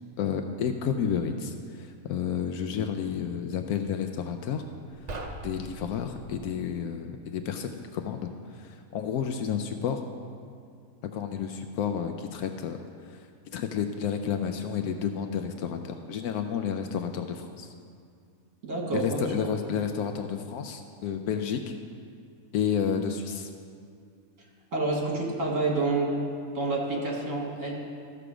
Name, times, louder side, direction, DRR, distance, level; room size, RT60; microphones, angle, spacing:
voice 1, 0.2-4.6 5.4-10.0 11.0-13.2 13.5-17.7 18.9-21.8 22.5-23.5, left 7 dB, 80° left, 6 dB, 1.1 m, -31 dB
sound 1, 5.0-6.5, right 2 dB, 40° right, 0.6 m, -40 dB
voice 2, 18.6-19.3 24.7-26.1 26.5-27.7, right 3 dB, 55° right, -2 dB, 2.3 m, -28 dB
13.5 x 6.9 x 4.9 m, 2.3 s
omnidirectional pair, 1.6 m